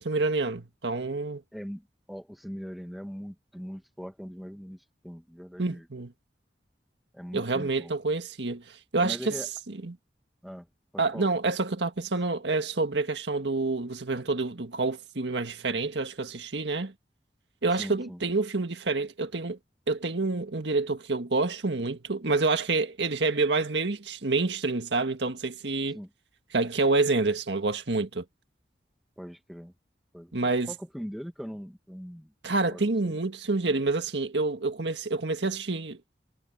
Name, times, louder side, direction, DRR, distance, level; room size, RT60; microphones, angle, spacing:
voice 1, 0.0-1.4 5.6-6.1 7.3-9.3 9.8-10.0 11.0-16.9 17.6-19.6 19.9-26.0 26.5-28.2 30.3-30.7 32.4-36.0, right 3 dB, 90° right, 1.7 m, -28 dB
voice 2, 1.5-5.9 7.1-7.9 9.0-9.5 10.4-10.7 10.9-11.3 17.7-18.2 25.9-26.1 29.2-29.7 30.1-32.3 32.7-33.2, equal, ahead, 1.7 m, -41 dB
head